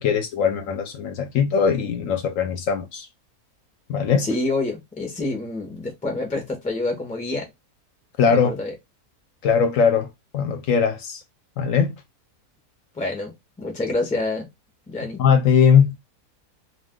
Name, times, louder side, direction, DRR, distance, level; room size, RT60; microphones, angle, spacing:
voice 1, 0.0-3.1 3.9-4.3 8.2-8.5 9.4-10.1 10.3-11.2 11.6-11.9 15.2-16.0, left 6 dB, 70° left, 0.9 m, -20 dB
voice 2, 4.2-7.5 8.3-8.7 12.9-13.3 13.6-14.5 14.9-15.2, left 2 dB, 10° left, 0.4 m, -27 dB
2.4 x 2.4 x 3.6 m
omnidirectional pair, 1.6 m